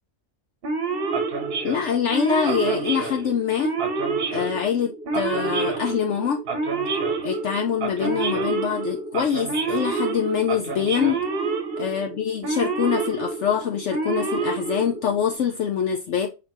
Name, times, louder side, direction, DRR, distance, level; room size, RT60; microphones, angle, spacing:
Male speech man speaking / Siren, 0.6-15.4, right 4 dB, 45° right, 1.0 m, -28 dB
voice 1, 1.6-3.7 4.3-6.4 7.2-11.2 11.8-16.3, left 8 dB, 65° left, 0.9 m, -24 dB
5.4 x 3.4 x 2.9 m
omnidirectional pair, 1.5 m